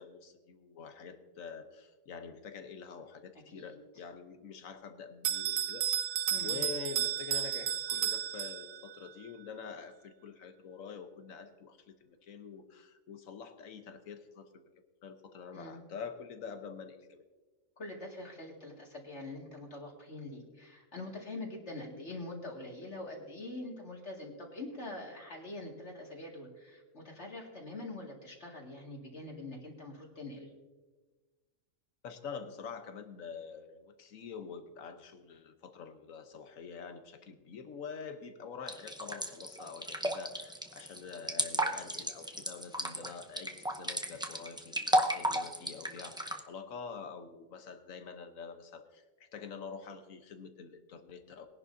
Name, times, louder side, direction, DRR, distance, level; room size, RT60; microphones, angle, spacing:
voice 1, 0.0-5.9 6.4-14.6 15.0-17.2 32.0-51.5, left 6 dB, 80° left, 8 dB, 1.4 m, -46 dB
Bell, 5.2-9.0, right 10 dB, 85° right, 1.1 m, -33 dB
voice 2, 15.5-15.9 17.8-30.5, left 2 dB, 55° left, -1 dB, 2.5 m, -44 dB
sound 1, 38.7-46.4, right 1 dB, 5° right, 0.5 m, -33 dB
21.0 x 11.0 x 2.7 m, 1.3 s
omnidirectional pair, 1.4 m